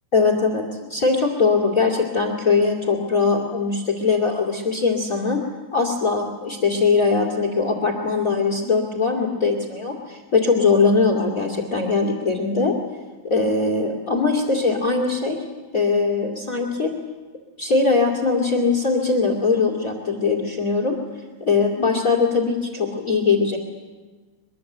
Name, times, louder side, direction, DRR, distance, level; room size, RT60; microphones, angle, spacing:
voice 1, 0.1-0.6 0.9-5.4 5.7-12.7 13.2-15.4 15.7-16.9 17.6-21.0 21.4-23.6, left 4 dB, 45° left, 4 dB, 1.0 m, -21 dB
23.5 x 23.0 x 8.0 m, 1.3 s
omnidirectional pair, 5.9 m